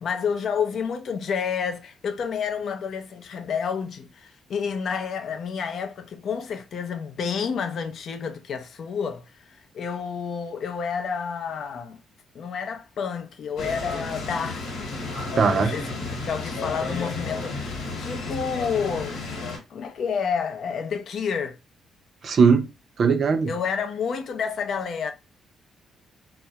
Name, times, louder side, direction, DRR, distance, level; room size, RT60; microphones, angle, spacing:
voice 1, 0.0-9.2 9.5-12.0 12.3-14.9 15.5-19.2 19.7-21.6 23.5-25.1, left 6 dB, 60° left, 0.4 m, -29 dB
sound 1, 13.6-19.6, left 3 dB, 80° left, 1.1 m, -32 dB
voice 2, 15.4-15.7 22.2-22.7 23.0-23.5, right 5 dB, 50° right, 0.4 m, -19 dB
2.2 x 2.0 x 2.7 m
cardioid pair, 90°, 0 cm